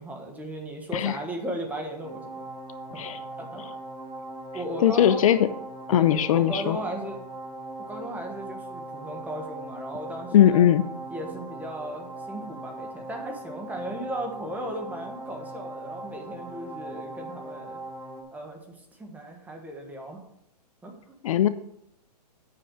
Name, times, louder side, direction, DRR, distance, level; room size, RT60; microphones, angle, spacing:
voice 1, 0.0-2.2 3.4-3.6 4.5-5.3 5.9-7.2 7.9-10.7 11.1-17.8 18.3-20.2 20.8-21.2, right 1 dB, 10° right, 3 dB, 1.3 m, -36 dB
sound 1, 2.0-18.2, right 2 dB, 85° right, 2.5 m, -40 dB
voice 2, 4.8-5.5 5.9-6.8 10.3-10.8 21.2-21.5, left 11 dB, 55° left, 12 dB, 0.5 m, -19 dB
8.3 x 5.5 x 6.3 m, 0.77 s
hypercardioid pair, 145°, 21 cm